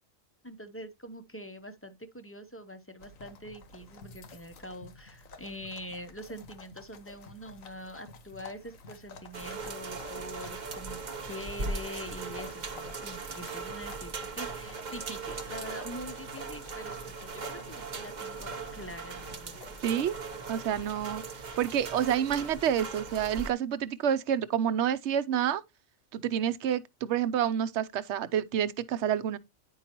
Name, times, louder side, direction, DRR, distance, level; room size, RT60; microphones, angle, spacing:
voice 1, 0.4-19.8, equal, 15° left, 0.6 m, -44 dB
sound 1, 3.0-22.6, left 3 dB, 85° left, 1.5 m, -51 dB
sound 2, 9.3-23.5, right 4 dB, 40° right, 0.9 m, -39 dB
voice 2, 19.8-20.1 20.5-21.2 21.6-25.6 26.1-29.4, right 9 dB, 65° right, 0.9 m, -28 dB
9.9 x 5.5 x 3.0 m
omnidirectional pair, 1.4 m